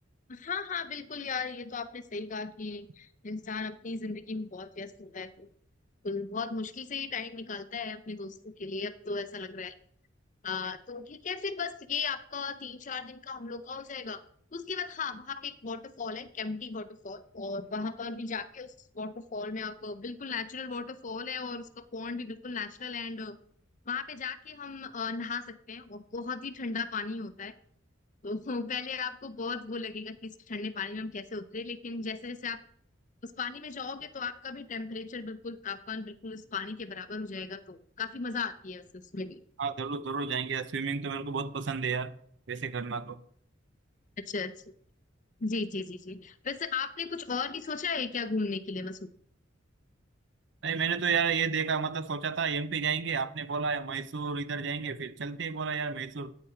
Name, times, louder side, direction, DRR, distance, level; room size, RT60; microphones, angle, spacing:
voice 1, 0.3-5.5 6.0-9.8 10.4-14.2 14.5-23.4 23.9-27.5 28.2-32.6 33.2-39.4 44.3-44.5 45.4-49.0, left 4 dB, 40° left, 0.6 m, -36 dB
voice 2, 39.6-42.1 42.5-43.2 50.6-56.4, right 5 dB, 65° right, 0.6 m, -31 dB
9.0 x 8.5 x 4.4 m
head